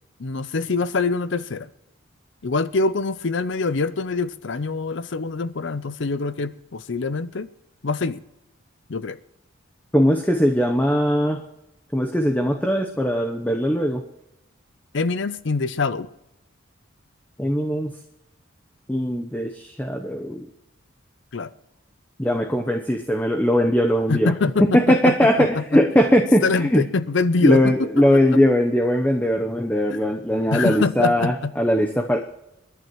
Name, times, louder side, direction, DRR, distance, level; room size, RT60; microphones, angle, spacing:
voice 1, 0.2-1.7 2.4-7.5 7.8-8.2 8.9-9.2 14.9-16.1 21.3-21.5 24.1-25.8 26.4-28.4 29.9-30.0 30.5-31.5, left 3 dB, 65° left, 0.6 m, -24 dB
voice 2, 9.9-11.4 11.9-14.0 17.4-17.9 18.9-20.5 22.2-24.3 24.6-26.8 27.4-32.2, equal, 10° left, 0.8 m, -20 dB
29.5 x 11.0 x 3.1 m
head